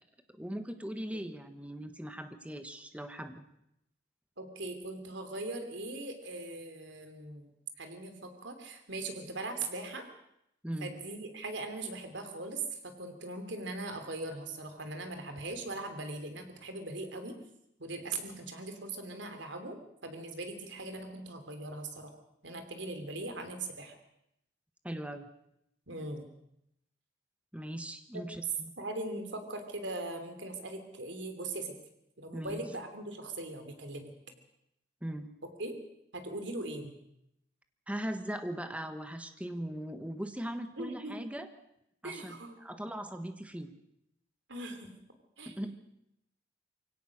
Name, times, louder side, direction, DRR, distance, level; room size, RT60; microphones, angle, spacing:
voice 1, 0.3-3.4 10.6-10.9 24.8-25.2 27.5-28.7 32.3-32.6 35.0-35.3 37.9-41.5 42.0-43.7 45.4-45.8, right 1 dB, 5° right, 8 dB, 1.3 m, -39 dB
voice 2, 4.4-7.5 7.8-10.1 10.8-17.4 17.8-19.8 20.0-22.1 22.4-24.0 25.9-26.2 28.1-28.2 28.8-31.8 32.2-34.1 35.4-35.7 36.1-36.9 40.8-41.2 42.0-42.6 44.5-44.9 45.4-45.6, right 2 dB, 70° right, 7 dB, 3.2 m, -40 dB
23.5 x 17.0 x 6.5 m, 0.80 s
head